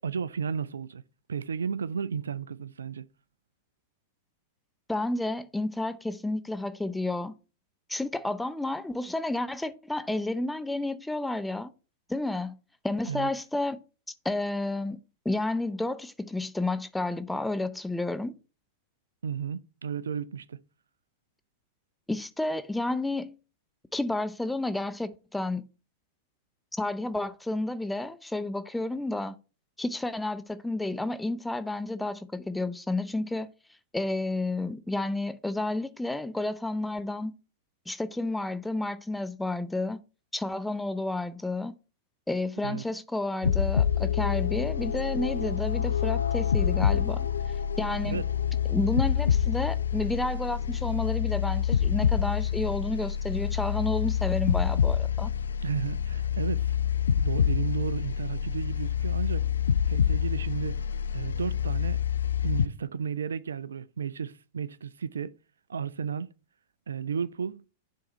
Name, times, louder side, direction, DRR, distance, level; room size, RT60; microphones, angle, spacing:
voice 1, 0.0-1.0 1.3-3.1 13.1-13.3 19.2-20.6 42.6-42.8 48.0-48.3 55.6-56.8 57.2-59.5 59.9-60.8 61.1-62.0 62.4-65.3 65.7-66.3 66.9-67.7, right 6 dB, 80° right, 0.3 m, -33 dB
voice 2, 4.9-7.4 7.9-11.7 12.1-12.6 12.8-13.8 14.2-15.0 15.2-18.3 22.1-23.3 23.9-25.7 26.7-29.3 29.8-33.5 33.9-37.3 37.9-40.0 40.3-41.7 42.3-47.3 47.8-48.2 48.7-55.3, left 2 dB, 5° left, 0.6 m, -31 dB
sound 1, 43.4-62.7, left 8 dB, 80° left, 0.4 m, -27 dB
9.8 x 3.6 x 4.2 m
hypercardioid pair, 100°, 0 cm